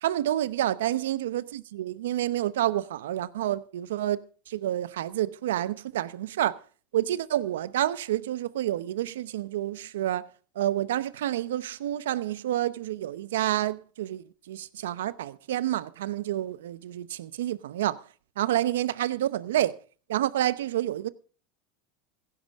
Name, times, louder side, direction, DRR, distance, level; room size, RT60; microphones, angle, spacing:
voice 1, 0.0-6.6 6.9-10.2 10.5-18.0 18.4-19.8 20.1-21.1, right 13 dB, 85° right, 0.8 m, -29 dB
15.5 x 11.0 x 3.6 m
supercardioid pair, 110°, 0 cm